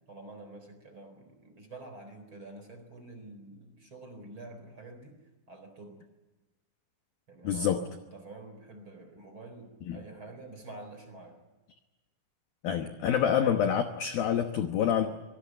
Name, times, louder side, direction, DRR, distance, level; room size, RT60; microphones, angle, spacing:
voice 1, 0.1-6.0 7.3-11.4, right 2 dB, 25° right, 6 dB, 4.2 m, -48 dB
voice 2, 7.4-7.8 9.9-10.0 12.6-15.1, left 8 dB, 70° left, 6 dB, 2.3 m, -27 dB
24.5 x 19.0 x 9.4 m, 1.2 s
omnidirectional pair, 5.8 m